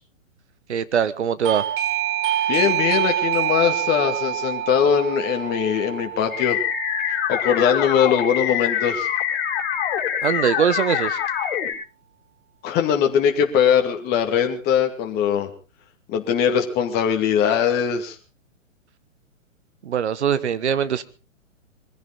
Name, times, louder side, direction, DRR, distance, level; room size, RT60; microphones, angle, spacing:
voice 1, 0.7-1.7 10.2-11.2 19.8-21.0, right 8 dB, 60° right, 1.3 m, -22 dB
Doorbell, 1.4-7.9, right 11 dB, 40° right, 1.6 m, -26 dB
voice 2, 2.5-6.6 7.3-9.1 12.6-15.5 16.1-18.2, left 8 dB, 25° left, 2.4 m, -21 dB
sound 1, 6.3-11.7, left 9 dB, 45° left, 4.2 m, -25 dB
22.0 x 15.5 x 4.0 m
figure-of-eight pair, 120°, 39 cm